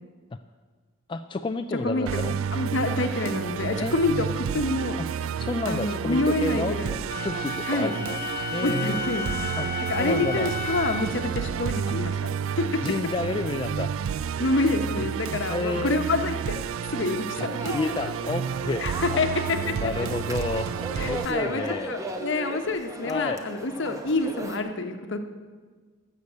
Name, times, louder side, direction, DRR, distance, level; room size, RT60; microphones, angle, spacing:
voice 1, 1.1-2.4 3.8-3.9 5.0-6.8 7.2-8.2 8.5-9.1 9.6-10.5 11.9-12.0 12.8-13.9 15.5-16.0 17.7-18.9 19.1-19.2 19.7-21.9 23.0-23.4, left 3 dB, 25° left, 7 dB, 0.3 m, -30 dB
Musical instrument, 2.1-21.3, right 7 dB, 80° right, 0.3 m, -31 dB
voice 2, 2.5-5.0 5.6-6.9 7.7-7.9 8.6-9.3 9.9-12.1 12.6-12.7 14.4-16.6 16.9-17.9 18.8-19.3 21.0-21.6 21.9-25.2, left 2 dB, 60° left, 6 dB, 1.1 m, -27 dB
Wind instrument woodwind instrument, 7.1-11.2, left 4 dB, 40° left, 1.2 m, -33 dB
sound 1, 17.5-24.6, right 1 dB, 15° right, 0.9 m, -37 dB
13.0 x 6.8 x 8.3 m, 1.5 s
head